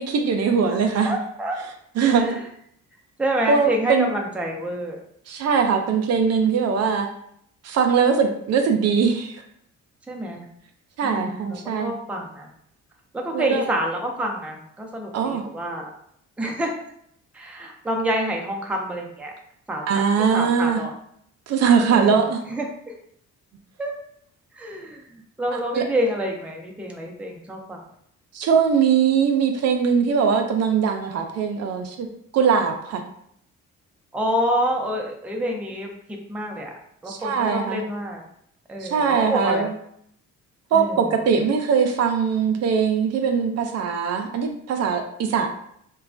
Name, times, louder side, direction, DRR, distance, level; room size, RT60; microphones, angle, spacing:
voice 1, 0.0-1.2 2.0-2.4 3.5-4.1 5.3-7.1 7.6-9.4 11.0-11.9 13.3-13.6 15.1-15.4 19.9-20.8 21.5-22.4 25.7-25.8 28.3-32.1 32.3-33.0 37.1-37.8 38.8-39.7 40.7-45.5, right 6 dB, 60° right, 4 dB, 0.4 m, -21 dB
voice 2, 0.7-1.6 2.0-2.4 3.2-5.0 10.1-10.5 11.0-12.5 13.1-15.9 16.4-16.7 17.3-19.3 19.7-20.0 20.3-20.9 21.9-22.2 22.5-22.9 23.8-23.9 24.5-27.8 34.1-36.7 37.0-38.2 38.7-39.7 40.7-41.0, equal, 5° right, 0 dB, 0.4 m, -28 dB
3.1 x 2.2 x 2.5 m, 0.70 s
cardioid pair, 90°, 30 cm